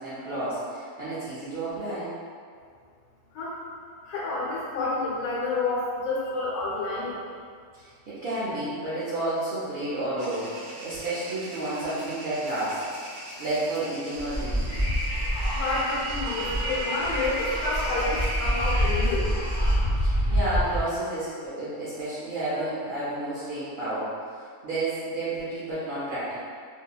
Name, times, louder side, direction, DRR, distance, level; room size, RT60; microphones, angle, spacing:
voice 1, 0.0-2.1 7.8-13.0 13.4-14.8 19.9-26.4, right 1 dB, 60° right, -11 dB, 0.6 m, -31 dB
voice 2, 4.0-7.2 15.5-19.4, left 2 dB, 80° left, -6 dB, 1.2 m, -29 dB
sound 1, 10.2-19.7, right 1 dB, 85° right, 1.2 m, -43 dB
Wind, 14.1-20.8, equal, 20° left, 0.8 m, -26 dB
2.7 x 2.5 x 2.3 m, 2.1 s
omnidirectional pair, 1.6 m